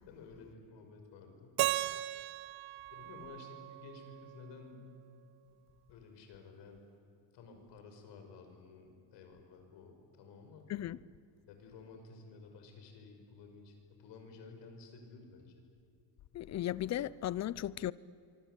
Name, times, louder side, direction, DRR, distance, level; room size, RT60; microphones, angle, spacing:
voice 1, 0.1-1.6 2.9-4.8 5.4-5.6 5.9-6.8 7.3-10.7 11.5-15.6, left 4 dB, 75° left, 5.8 m, -53 dB
Keyboard (musical), 1.6-4.6, right 15 dB, 60° right, 0.9 m, -37 dB
voice 2, 16.3-17.9, left 12 dB, 40° left, 0.6 m, -36 dB
26.5 x 24.0 x 8.2 m
cardioid pair, 145°, 43 cm